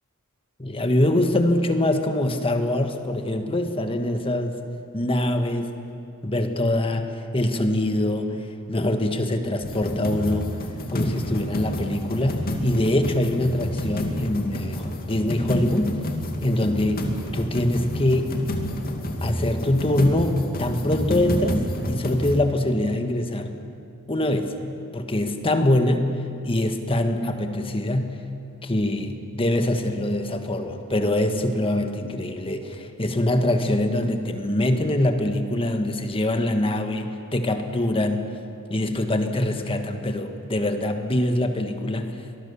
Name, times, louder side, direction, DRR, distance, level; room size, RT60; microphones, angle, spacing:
voice 1, 0.6-4.5 4.9-5.7 6.2-8.4 8.7-10.6 10.9-16.0 16.4-18.4 19.2-23.6 24.1-24.6 24.9-26.1 26.4-28.2 28.6-38.3 38.7-42.2, left 1 dB, 25° left, 6 dB, 1.4 m, -24 dB
sound 1, 9.6-22.4, equal, 45° left, 2.3 m, -29 dB
25.0 x 19.5 x 7.0 m, 2.7 s
head